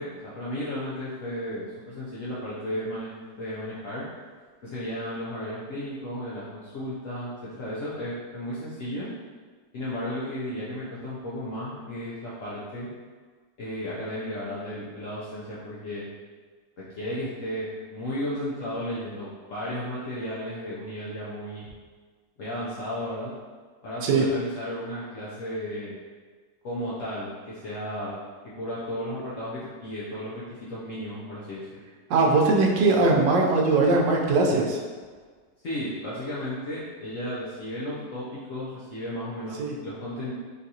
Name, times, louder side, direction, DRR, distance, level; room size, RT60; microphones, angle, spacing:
voice 1, 0.0-3.1 3.4-4.0 4.6-9.1 9.7-12.9 13.6-16.1 16.8-21.7 22.4-23.3 23.8-25.9 26.6-28.2 28.6-31.8 35.6-40.3, equal, 70° left, -8 dB, 0.7 m, -34 dB
voice 2, 32.1-34.8 39.6-39.7, right 3 dB, 85° right, 0 dB, 1.3 m, -20 dB
3.8 x 2.4 x 2.7 m, 1.5 s
omnidirectional pair, 2.0 m